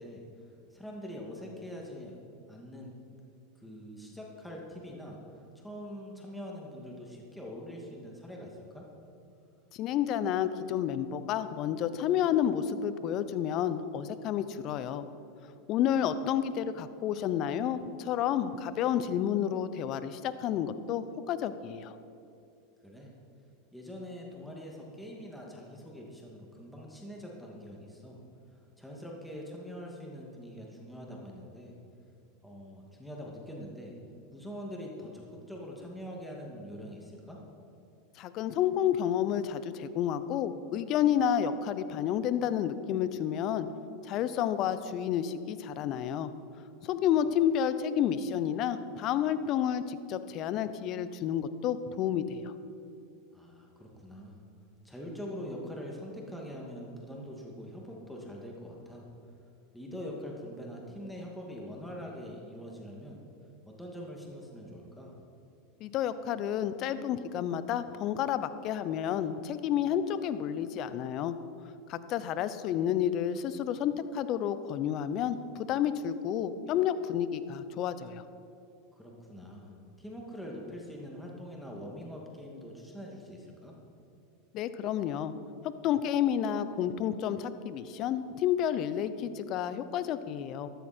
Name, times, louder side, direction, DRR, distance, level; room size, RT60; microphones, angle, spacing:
voice 1, 0.0-2.2 2.5-2.9 3.6-8.9 22.8-23.1 23.7-28.2 28.5-31.7 32.4-34.0 34.3-37.4 53.3-54.4 54.8-59.1 59.7-63.2 63.7-65.1 78.9-83.7, equal, 5° left, -2 dB, 2.4 m, -44 dB
voice 2, 9.7-15.0 15.7-21.9 38.2-43.7 44.0-46.3 46.8-52.5 65.8-71.4 71.9-78.2 84.5-85.3 85.6-90.7, left 9 dB, 50° left, 13 dB, 0.8 m, -30 dB
13.5 x 13.0 x 4.5 m, 2.6 s
hypercardioid pair, 100°, 0 cm